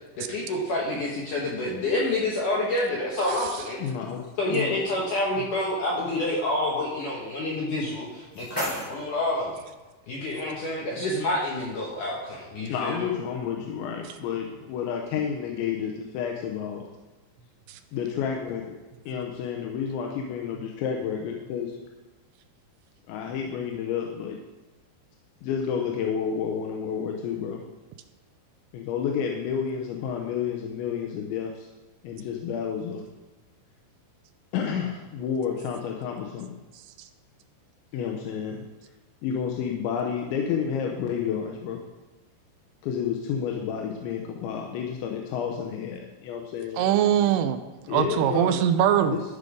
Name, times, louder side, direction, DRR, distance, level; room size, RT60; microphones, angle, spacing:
voice 1, 0.2-3.8 4.4-9.5 10.1-13.1, left 1 dB, 65° left, -4 dB, 2.1 m, -28 dB
voice 2, 3.8-4.8 12.7-16.8 17.9-18.8 19.1-21.8 23.1-24.4 25.4-27.6 28.7-31.7 32.0-33.0 34.5-36.5 37.9-38.7 39.2-41.8 42.8-46.8 47.9-48.6 49.0-49.2, left 7 dB, 85° left, 2 dB, 3.1 m, -30 dB
sound 1, 7.8-9.8, equal, 5° left, 2.7 m, -36 dB
voice 3, 46.8-47.6 47.9-49.2, right 10 dB, 85° right, 8 dB, 2.4 m, -22 dB
13.5 x 5.3 x 5.0 m, 1.2 s
omnidirectional pair, 5.3 m